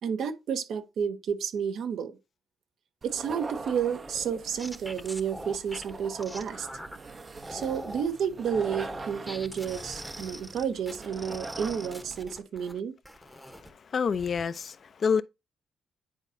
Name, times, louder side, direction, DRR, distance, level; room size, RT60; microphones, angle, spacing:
voice 1, 0.0-2.2 3.0-6.7 7.5-12.9, right 7 dB, 70° right, 1.2 m, -31 dB
sound 1, 3.0-12.3, right 3 dB, 35° right, 0.8 m, -43 dB
sound 2, 4.1-7.0 7.4-8.1 8.5-12.7 13.0-13.7 14.1-14.4, equal, 5° right, 1.0 m, -42 dB
voice 2, 13.9-15.2, left 6 dB, 45° left, 0.6 m, -27 dB
10.0 x 4.4 x 2.7 m
cardioid pair, 100°, 0 cm